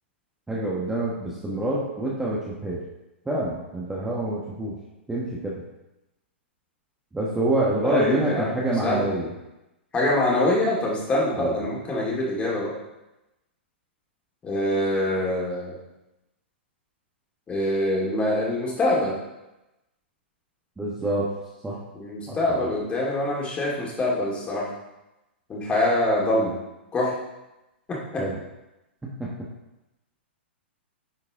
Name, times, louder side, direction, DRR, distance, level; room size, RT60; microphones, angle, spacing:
voice 1, 0.5-2.8 3.2-4.8 5.1-5.6 7.1-9.3 11.3-11.6 20.8-21.3 21.6-21.8 22.3-22.7 28.2-28.4 29.0-29.3, right 1 dB, 10° right, -6 dB, 1.3 m, -27 dB
voice 2, 7.8-9.1 9.9-12.7 14.4-15.8 17.5-19.2 21.9-24.7 25.5-26.6 26.9-27.1 27.9-28.3, left 1 dB, 20° left, -4 dB, 2.5 m, -24 dB
9.9 x 4.7 x 3.7 m, 0.96 s
figure-of-eight pair, 110°, 6 cm